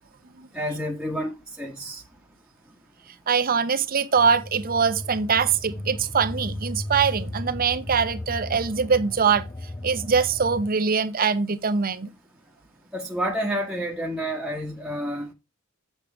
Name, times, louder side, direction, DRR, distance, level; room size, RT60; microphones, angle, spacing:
voice 1, 0.5-2.0 12.9-15.3, equal, 5° right, 1.1 m, -29 dB
voice 2, 3.3-9.5 9.8-12.1, right 6 dB, 45° right, 0.8 m, -23 dB
sound 1, 4.2-10.7, left 1 dB, 15° left, 0.4 m, -35 dB
7.4 x 6.8 x 3.4 m
head